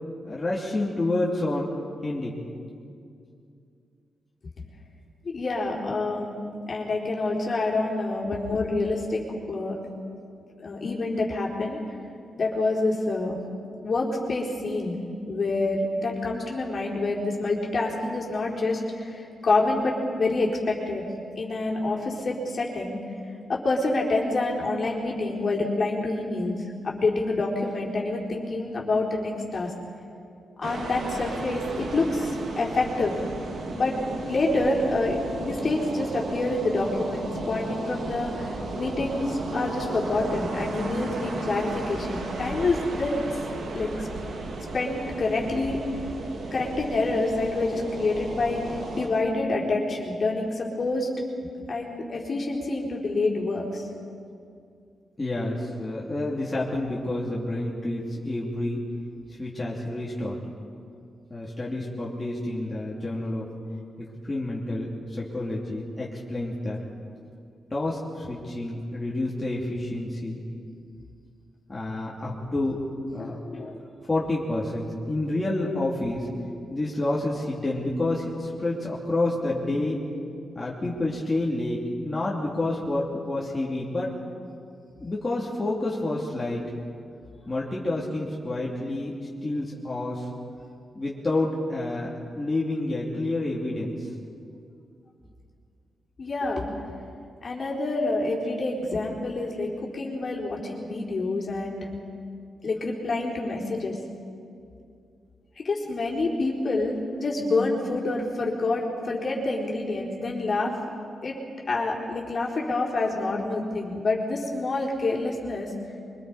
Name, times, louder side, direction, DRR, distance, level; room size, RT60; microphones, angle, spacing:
voice 1, 0.2-1.7 2.0-2.5 55.2-58.8 59.3-60.4 61.3-63.5 64.0-66.8 67.7-70.4 71.7-72.8 73.1-73.4 74.0-76.3 76.7-80.0 80.5-84.1 85.0-86.6 87.5-90.3 90.9-94.1, left 2 dB, 20° left, -5 dB, 3.0 m, -29 dB
voice 2, 5.3-9.2 9.5-9.8 10.6-11.8 12.3-13.4 13.8-15.0 15.3-21.1 21.4-23.0 23.5-29.7 30.6-33.1 33.7-34.0 34.3-43.2 43.7-44.1 44.7-45.8 46.5-51.1 51.7-53.8 73.2-73.8 96.2-96.6 97.4-101.9 102.6-104.1 105.6-110.7 111.2-111.4 111.7-115.7, left 2 dB, 45° left, -2 dB, 4.1 m, -27 dB
sound 1, 30.6-49.1, right 2 dB, 80° right, 3.5 m, -34 dB
26.0 x 24.0 x 5.0 m, 2.4 s
wide cardioid pair, 120°, 0 cm